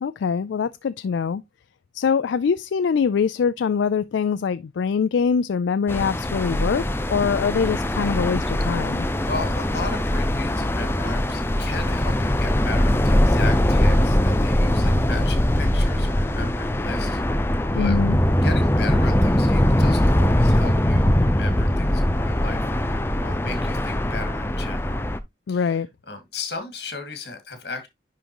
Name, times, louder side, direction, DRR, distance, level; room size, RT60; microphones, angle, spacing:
voice 1, 0.0-1.4 1.9-9.1 17.8-18.2 25.5-25.9, left 6 dB, 85° left, 0.4 m, -23 dB
sound 1, 5.9-25.2, left 1 dB, 15° left, 0.5 m, -21 dB
voice 2, 9.2-17.2 17.7-18.0 18.4-25.0 25.5-27.9, left 3 dB, 65° left, 2.1 m, -36 dB
10.5 x 3.8 x 2.9 m
head